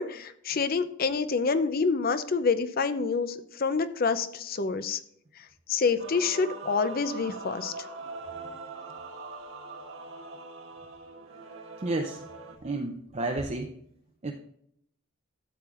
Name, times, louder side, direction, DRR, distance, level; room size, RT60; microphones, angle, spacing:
voice 1, 0.0-5.0 5.7-7.7, left 4 dB, 45° left, 12 dB, 0.5 m, -27 dB
Male singing / Female singing / Musical instrument, 6.0-12.5, right 3 dB, 70° right, 1.6 m, -42 dB
voice 2, 11.8-12.2 12.6-13.7 14.2-14.3, right 2 dB, 35° right, 2 dB, 0.6 m, -31 dB
12.5 x 7.4 x 2.5 m, 0.70 s
head